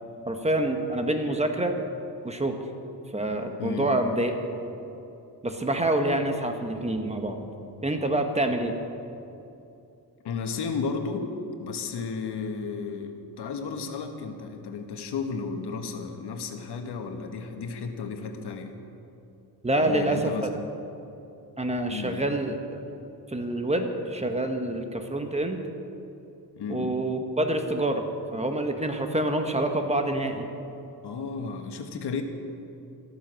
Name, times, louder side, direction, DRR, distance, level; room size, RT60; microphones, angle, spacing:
voice 1, 0.2-1.8 2.2-2.6 3.1-4.3 5.4-7.5 7.8-8.8 19.6-20.5 21.6-22.8 23.3-25.6 26.7-28.1 28.3-30.5, right 1 dB, 15° right, 5 dB, 1.3 m, -27 dB
voice 2, 3.6-3.9 10.2-11.3 11.6-18.7 19.7-20.5 21.9-22.3 26.6-27.0 31.0-32.2, left 5 dB, 85° left, 5 dB, 1.6 m, -33 dB
14.5 x 14.0 x 6.3 m, 2.8 s
wide cardioid pair, 130°, 39 cm